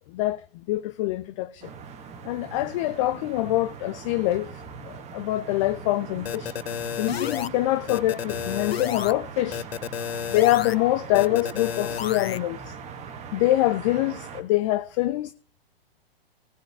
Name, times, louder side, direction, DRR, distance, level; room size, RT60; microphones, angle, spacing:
voice 1, 0.1-1.7 2.2-6.5 7.0-9.7 10.3-12.7 13.3-15.3, left 16 dB, 30° left, 0.5 m, -25 dB
sound 1, 1.6-14.4, right 6 dB, 20° right, 1.6 m, -41 dB
sound 2, 6.3-7.5 7.9-9.1 9.5-10.8 11.1-12.4, left 9 dB, 80° left, 0.5 m, -31 dB
18.0 x 7.9 x 3.6 m
figure-of-eight pair, 115°, 30 cm